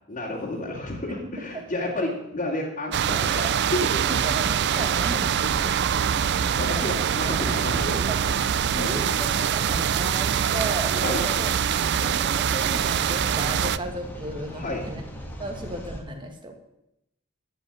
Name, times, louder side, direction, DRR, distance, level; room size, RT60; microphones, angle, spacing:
voice 1, 0.1-4.0 6.6-7.9 8.7-9.0 11.0-11.3 14.5-14.8, left 1 dB, 35° left, -6 dB, 2.6 m, -31 dB
voice 2, 1.2-1.6 4.0-5.7 7.3-7.5 7.9-8.4 8.7-11.5 11.8-15.0 15.4-16.6, right 1 dB, 25° right, 3 dB, 1.9 m, -35 dB
sound 1, 2.9-13.8, right 8 dB, 55° right, 0.4 m, -24 dB
sound 2, 4.1-16.0, equal, 10° left, 2.2 m, -38 dB
14.5 x 5.6 x 9.9 m, 0.85 s
head